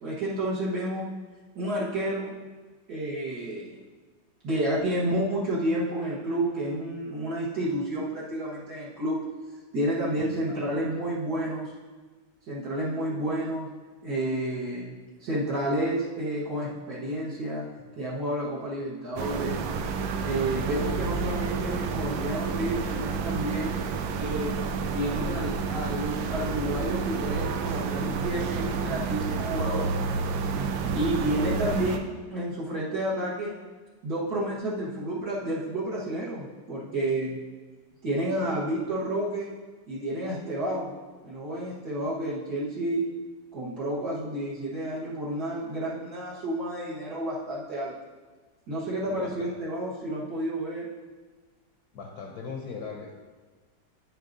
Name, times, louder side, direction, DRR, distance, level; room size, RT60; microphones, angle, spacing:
voice 1, 0.0-1.1 1.6-2.3 2.9-3.7 4.4-9.2 9.7-11.7 12.5-13.7 14.0-14.9 15.2-17.6 18.0-19.7 20.2-23.7 24.1-24.6 24.9-29.9 30.9-33.6 34.0-37.4 38.0-39.5 39.9-40.9 41.2-43.0 43.5-47.9 48.7-50.9, right 1 dB, 55° right, -8 dB, 1.8 m, -30 dB
voice 2, 10.2-10.6 10.8-10.9 49.1-49.5 51.9-53.1, left 5 dB, 65° left, 1 dB, 1.1 m, -39 dB
sound 1, 19.2-32.0, right 5 dB, 85° right, 1.4 m, -30 dB
9.9 x 7.3 x 2.6 m, 1.4 s
omnidirectional pair, 2.1 m